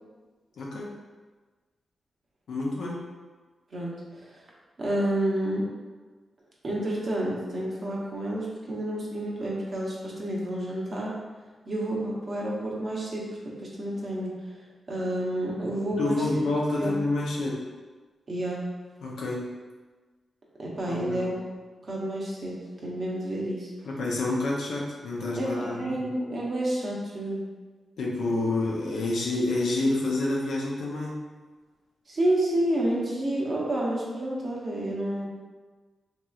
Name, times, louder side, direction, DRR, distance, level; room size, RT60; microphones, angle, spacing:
voice 1, 0.6-0.9 2.5-3.1 16.0-17.7 19.0-19.5 20.9-21.3 23.8-26.0 28.0-31.2, left 2 dB, 85° left, -4 dB, 0.5 m, -28 dB
voice 2, 3.7-4.4 4.8-5.7 6.6-11.2 11.7-14.4 14.9-16.2 16.8-16.9 18.3-18.7 20.6-21.3 21.8-23.7 25.4-27.4 32.1-35.3, right 1 dB, 55° right, -4 dB, 0.8 m, -29 dB
2.9 x 2.9 x 2.4 m, 1.3 s
cardioid pair, 70°, 0 cm